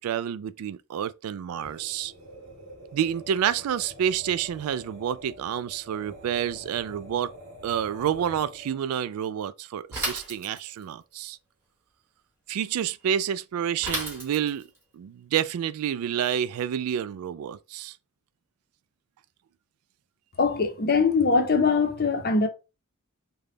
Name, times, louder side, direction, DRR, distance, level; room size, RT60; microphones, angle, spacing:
voice 1, 0.0-2.1 2.9-7.3 7.6-11.4 12.5-14.7 14.9-18.0, right 9 dB, 75° right, 0.3 m, -29 dB
sound 1, 1.5-8.9, equal, 55° right, 1.5 m, -47 dB
Bicycle / Mechanisms, 9.9-10.9 13.8-14.8, right 1 dB, 10° right, 1.5 m, -33 dB
voice 2, 20.4-22.5, left 4 dB, 45° left, 0.7 m, -22 dB
3.4 x 2.2 x 3.8 m
head